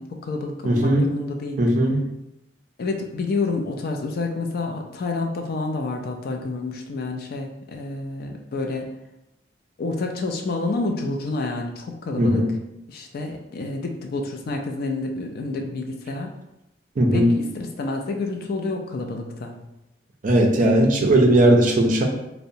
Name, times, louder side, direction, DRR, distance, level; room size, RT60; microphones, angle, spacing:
voice 1, 0.0-1.6 2.8-8.9 9.8-12.4 12.9-16.4 17.1-19.5, left 3 dB, 55° left, 3 dB, 0.3 m, -29 dB
voice 2, 0.6-1.1 1.6-2.0 12.2-12.5 17.0-17.4 20.2-22.0, right 1 dB, 45° right, 2 dB, 0.4 m, -18 dB
2.7 x 2.0 x 2.6 m, 0.88 s
head